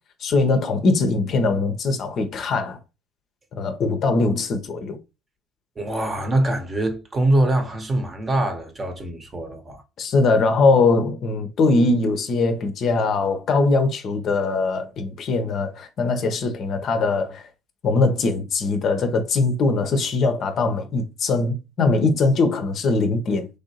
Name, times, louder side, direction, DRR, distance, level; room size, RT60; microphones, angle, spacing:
voice 1, 0.2-2.8 3.6-5.0 10.0-17.5 17.8-23.5, left 3 dB, 45° left, 0.5 m, -21 dB
voice 2, 5.8-9.8, right 1 dB, 25° right, 0.8 m, -23 dB
3.2 x 2.6 x 2.8 m
figure-of-eight pair, 60°, 0 cm